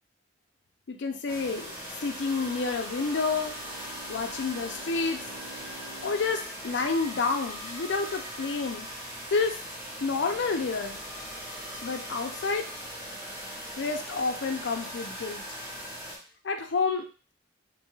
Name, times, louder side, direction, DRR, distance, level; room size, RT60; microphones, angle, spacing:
voice 1, 0.9-1.7 2.0-3.5 4.1-5.2 6.0-8.9 9.3-9.6 10.0-11.0 11.8-12.7 13.8-15.4 16.4-17.0, left 4 dB, 65° left, 5 dB, 0.4 m, -29 dB
sound 1, 1.3-16.2, equal, 10° right, 0.7 m, -40 dB
Bowed string instrument, 2.9-7.6, right 1 dB, 70° right, 0.7 m, -50 dB
2.6 x 2.3 x 3.0 m, 0.37 s
head